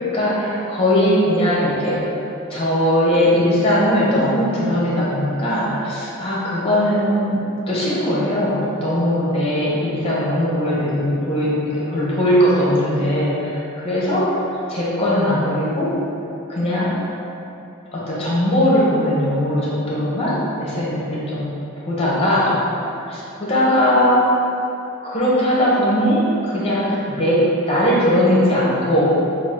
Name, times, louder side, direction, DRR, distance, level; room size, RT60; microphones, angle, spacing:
voice 1, 0.1-2.0 2.5-7.4 7.7-15.9 16.5-16.9 17.9-21.5 21.8-22.5 22.9-24.4 25.0-29.0, equal, 25° left, -7 dB, 0.8 m, -19 dB
3.8 x 2.4 x 3.6 m, 2.8 s
head